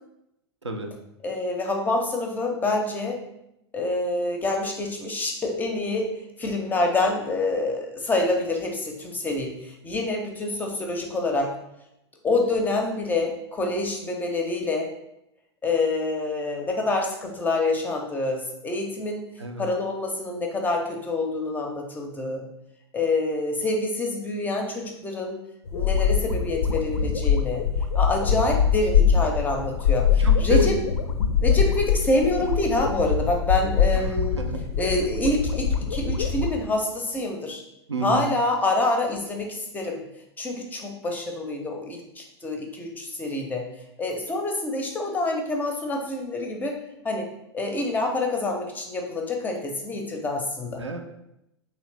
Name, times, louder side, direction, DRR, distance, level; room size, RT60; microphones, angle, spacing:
voice 1, 1.2-3.2 3.7-6.1 6.4-11.5 12.2-14.9 15.6-19.3 19.6-22.4 22.9-25.4 25.7-27.6 27.9-30.7 31.4-34.4 34.8-37.6 38.0-40.0 40.4-43.6 44.0-46.8 47.0-47.3 47.5-50.8, left 2 dB, 10° left, 2 dB, 0.5 m, -26 dB
sound 1, 25.7-36.5, left 7 dB, 70° left, 0.4 m, -23 dB
voice 2, 30.2-30.7 34.1-34.6 37.9-38.3 50.8-51.0, right 1 dB, 80° right, 4 dB, 0.5 m, -29 dB
3.1 x 2.9 x 3.1 m, 0.84 s
figure-of-eight pair, 95°, 15 cm